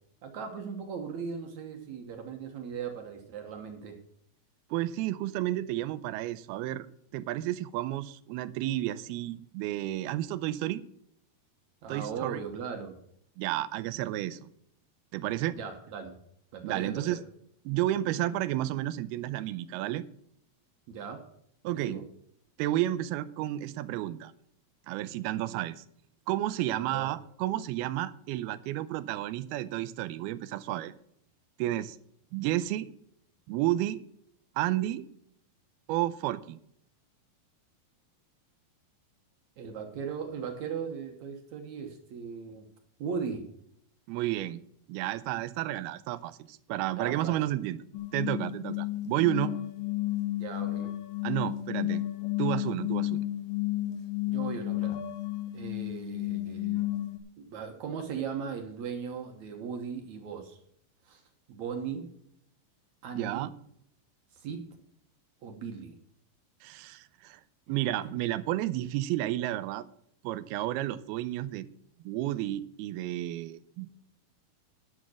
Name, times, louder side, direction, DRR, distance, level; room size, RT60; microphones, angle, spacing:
voice 1, 0.2-4.0 11.8-13.0 15.5-16.2 16.5-17.2 20.9-21.3 21.8-22.0 26.8-27.1 39.6-42.7 43.0-43.4 47.0-47.4 50.4-50.9 54.3-55.0 55.5-56.8 57.4-60.6 61.0-61.2 61.5-62.1 63.0-63.5 64.3-64.7 65.4-66.0 68.0-68.2, right 6 dB, 65° right, 4 dB, 1.9 m, -38 dB
voice 2, 4.7-6.9 7.1-10.8 11.9-12.4 13.4-14.5 15.1-15.6 16.6-17.2 17.7-20.0 21.6-22.0 22.6-24.3 24.9-25.8 26.3-30.9 31.6-32.0 32.3-32.9 33.5-34.0 34.6-35.0 35.9-36.6 44.1-44.6 44.9-47.8 48.1-49.5 51.2-52.0 52.4-53.2 63.2-63.5 66.6-67.4 67.7-69.9 70.2-71.7 72.1-73.9, right 14 dB, 85° right, 15 dB, 2.5 m, -31 dB
sound 1, 47.9-57.2, left 16 dB, 75° left, 2.7 m, -32 dB
11.0 x 7.3 x 6.3 m, 0.71 s
omnidirectional pair, 4.5 m